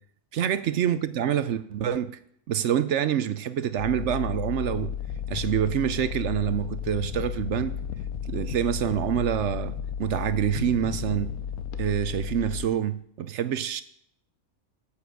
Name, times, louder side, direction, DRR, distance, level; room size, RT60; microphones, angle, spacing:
voice 1, 0.3-2.1 2.5-4.9 5.3-7.8 8.3-11.3 11.7-13.8, right 10 dB, 65° right, 0.8 m, -26 dB
sound 1, 3.8-12.7, left 9 dB, 80° left, 1.2 m, -33 dB
9.4 x 8.5 x 6.5 m
omnidirectional pair, 1.5 m